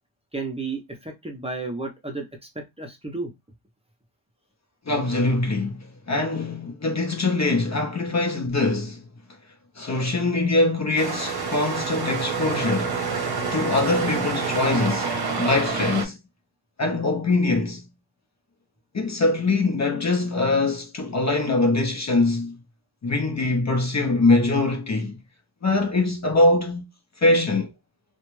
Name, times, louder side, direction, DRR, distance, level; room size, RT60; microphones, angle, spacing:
voice 1, 0.3-2.3 2.5-3.3, right 3 dB, 15° right, 0.6 m, -32 dB
voice 2, 4.9-9.0 9.8-13.0 13.5-16.2 16.8-17.9 18.9-22.6 23.0-25.2 25.6-26.8 27.2-27.7, left 2 dB, 35° left, 0.6 m, -23 dB
sound 1, 11.0-16.1, right 5 dB, 55° right, 0.8 m, -27 dB
2.4 x 2.2 x 3.0 m
wide cardioid pair, 95°, 46 cm